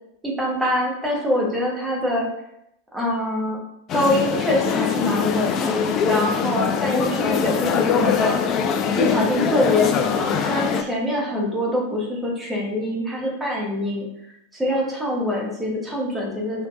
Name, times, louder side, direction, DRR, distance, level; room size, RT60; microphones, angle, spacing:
voice 1, 0.2-2.3 2.9-3.6 3.9-5.8 6.0-8.7 9.0-14.1 14.5-16.7, left 1 dB, 10° right, -2 dB, 1.1 m, -24 dB
sound 1, 3.9-10.8, left 6 dB, 30° left, 0.4 m, -22 dB
5.0 x 2.9 x 2.3 m, 0.78 s
figure-of-eight pair, 90°, 0 cm